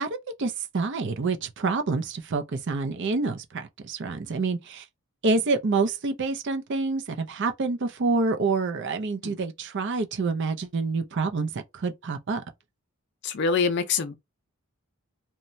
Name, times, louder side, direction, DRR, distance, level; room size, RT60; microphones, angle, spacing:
voice 1, 0.0-4.8 5.2-12.4, right 3 dB, 55° right, 0.5 m, -27 dB
voice 2, 13.2-14.1, left 5 dB, 55° left, 0.4 m, -25 dB
2.9 x 2.2 x 2.6 m
head